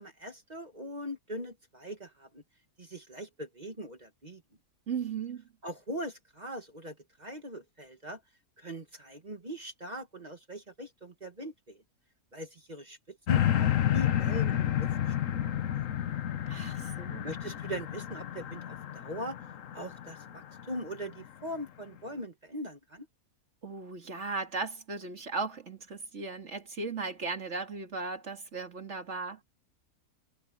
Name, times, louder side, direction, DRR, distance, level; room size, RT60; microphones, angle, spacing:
voice 1, 0.0-2.4 2.8-4.4 5.6-8.2 8.6-11.8 12.3-15.4 17.2-19.4 19.7-23.1, equal, 25° right, 1.6 m, -41 dB
voice 2, 4.9-5.4 16.5-17.2 23.6-29.4, right 4 dB, 45° right, 2.5 m, -37 dB
sound 1, 13.3-20.6 21.2-21.3, left 11 dB, 55° left, 1.2 m, -30 dB
omnidirectional pair, 1.7 m